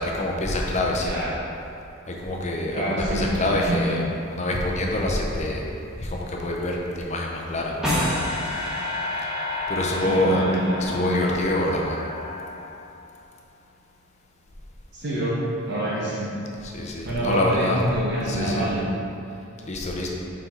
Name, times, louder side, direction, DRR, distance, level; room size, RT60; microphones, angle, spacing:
voice 1, 0.0-1.2 2.1-4.0 4.3-5.6 6.0-7.8 9.7-10.4 10.8-12.0 16.6-17.8 18.3-18.7 19.6-20.1, left 1 dB, 35° left, -1 dB, 0.7 m, -26 dB
voice 2, 1.0-1.4 2.7-4.0 10.0-11.5 14.9-16.4 17.0-18.9, right 1 dB, 55° right, -7 dB, 0.9 m, -26 dB
sound 1, 7.8-13.0, left 2 dB, 5° right, 1.4 m, -29 dB
5.9 x 4.3 x 4.3 m, 2.6 s
head